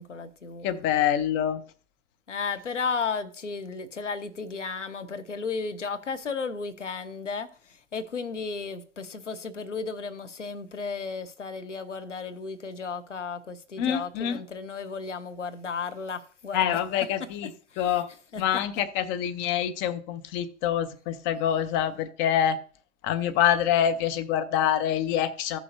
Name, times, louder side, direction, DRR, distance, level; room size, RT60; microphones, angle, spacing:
voice 1, 0.0-0.7 2.3-7.5 7.9-16.8 17.7-18.0 18.3-18.4, left 5 dB, 85° left, 0.7 m, -34 dB
voice 2, 0.6-1.6 13.8-14.4 16.5-17.5 17.8-18.1 18.4-22.6 23.0-25.6, left 10 dB, 35° left, 0.7 m, -26 dB
15.0 x 6.0 x 2.7 m
figure-of-eight pair, 90°, 35 cm